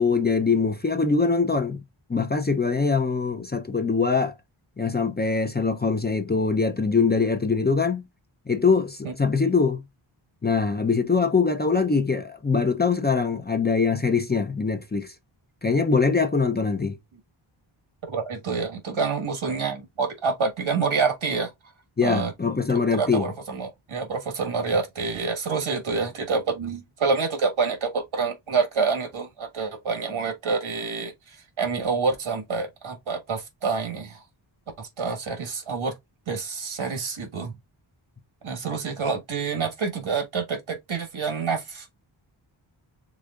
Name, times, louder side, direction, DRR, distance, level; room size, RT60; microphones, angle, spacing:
voice 1, 0.0-1.8 2.1-4.3 4.8-8.1 8.5-9.8 10.4-15.1 15.6-17.0 22.0-23.3, left 4 dB, 20° left, 0.5 m, -23 dB
voice 2, 18.1-21.5 22.0-22.3 22.7-34.2 34.8-35.9 36.3-37.5 38.4-42.0, right 4 dB, 75° right, 1.6 m, -27 dB
5.0 x 3.6 x 2.4 m
wide cardioid pair, 95°, 49 cm